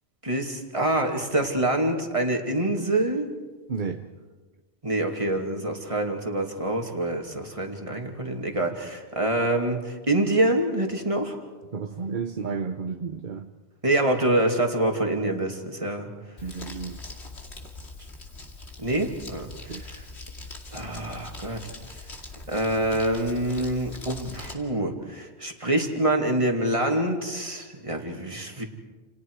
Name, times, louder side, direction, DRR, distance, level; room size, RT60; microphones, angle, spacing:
voice 1, 0.2-3.3 4.8-11.4 13.8-16.1 18.8-20.0 20.7-21.7 22.5-28.6, right 1 dB, 30° right, 2 dB, 2.6 m, -26 dB
voice 2, 3.7-4.0 11.7-13.5 16.4-17.0 19.7-19.8, right 5 dB, 45° right, 7 dB, 1.0 m, -32 dB
Crumpling crinkling, 16.4-24.5, left 2 dB, 70° left, 2.9 m, -42 dB
29.5 x 28.5 x 4.8 m, 1.3 s
omnidirectional pair, 1.2 m